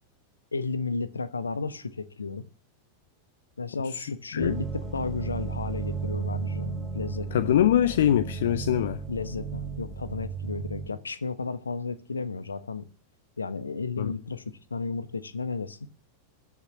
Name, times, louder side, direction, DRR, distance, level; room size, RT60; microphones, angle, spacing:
voice 1, 0.5-2.4 3.6-7.5 9.1-12.8 13.4-15.8, left 4 dB, 75° left, 1.1 m, -33 dB
sound 1, 4.4-10.9, right 5 dB, 15° right, 3.4 m, -34 dB
voice 2, 7.3-9.0 14.0-14.1, left 11 dB, 60° left, 0.6 m, -23 dB
14.0 x 6.3 x 8.4 m
figure-of-eight pair, 90°, 0 cm